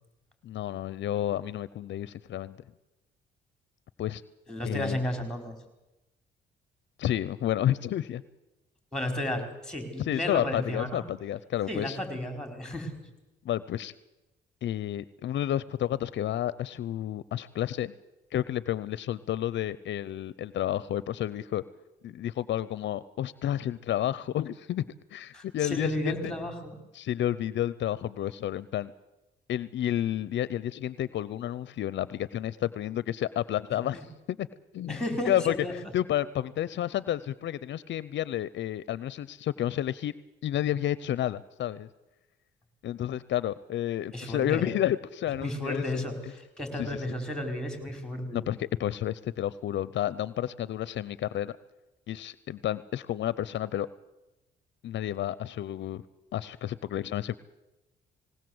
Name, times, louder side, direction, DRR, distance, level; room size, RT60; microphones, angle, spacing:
voice 1, 0.4-2.6 4.0-4.2 4.6-5.0 7.0-8.2 10.0-12.0 13.4-13.9 14.6-17.9 18.3-21.6 22.0-26.3 26.9-28.9 29.5-34.0 34.3-34.5 34.7-35.0 35.3-35.5 35.9-40.1 40.4-41.9 42.8-45.8 46.8-47.0 48.3-51.6 52.1-53.9 54.8-56.0 56.3-57.4, left 12 dB, 65° left, 18 dB, 0.6 m, -30 dB
voice 2, 4.5-5.6 8.9-11.0 11.7-13.0 25.3-26.8 33.9-34.0 34.9-35.7 44.1-44.7 45.4-48.4, left 1 dB, 5° left, 6 dB, 4.3 m, -33 dB
19.5 x 18.0 x 7.8 m, 1.0 s
cardioid pair, 90°, 20 cm